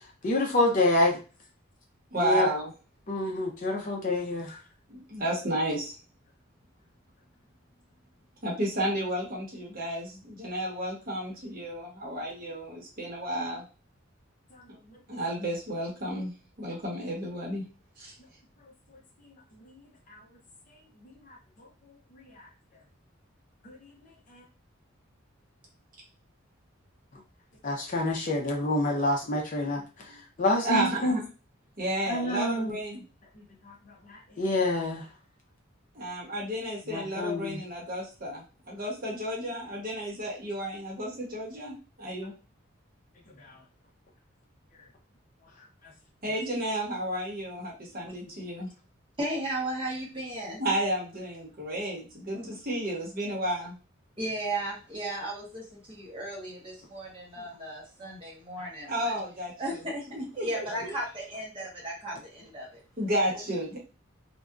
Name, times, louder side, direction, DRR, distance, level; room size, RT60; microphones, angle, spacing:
voice 1, 0.2-1.2 2.2-2.5 3.1-4.6 20.1-20.2 22.1-22.5 23.6-23.8 24.3-24.4 27.6-29.8 30.4-31.2 32.1-32.8 33.6-33.7 34.1-35.0 36.9-37.6 43.4-43.5, left 2 dB, 40° left, 1 dB, 0.5 m, -27 dB
voice 2, 2.1-2.7 4.9-5.9 8.4-13.6 15.1-16.3 16.6-17.6 18.0-18.1 30.6-31.2 31.8-33.0 36.0-38.4 38.7-42.3 46.2-48.7 50.6-53.7 58.9-59.5 60.1-60.9 63.0-63.8, right 1 dB, 45° right, -2 dB, 0.9 m, -32 dB
voice 3, 49.2-50.6 52.3-52.6 54.2-59.2 59.6-62.8 63.5-63.6, right 1 dB, 25° right, -4 dB, 1.1 m, -35 dB
2.7 x 2.1 x 2.3 m, 0.32 s
head